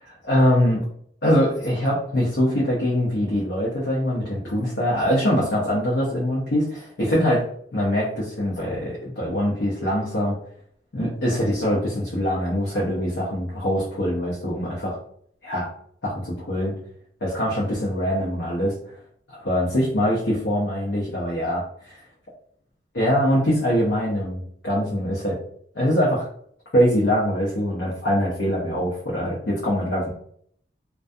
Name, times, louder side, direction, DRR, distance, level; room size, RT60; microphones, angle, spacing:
voice 1, 0.2-0.8 1.2-7.4 7.7-10.4 10.9-15.0 15.4-15.7 16.0-16.7 17.2-18.7 19.3-22.0 22.9-25.4 25.7-26.3 26.7-30.1, equal, 70° left, -6 dB, 0.7 m, -23 dB
2.3 x 2.2 x 2.6 m, 0.63 s
head